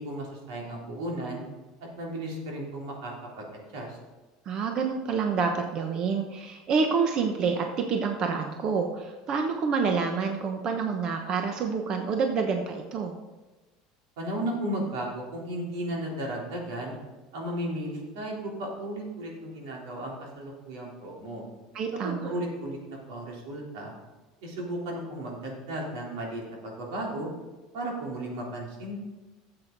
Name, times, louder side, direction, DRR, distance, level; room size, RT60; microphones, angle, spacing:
voice 1, 0.0-1.4 2.0-4.0 14.2-17.0 17.3-21.4 22.0-23.9 24.4-27.3 27.7-29.0, right 1 dB, 90° right, -2 dB, 3.7 m, -35 dB
voice 2, 4.5-13.1 21.7-22.3, right 5 dB, 40° right, 4 dB, 1.0 m, -28 dB
13.5 x 7.8 x 4.0 m, 1.2 s
cardioid pair, 145°, 2 cm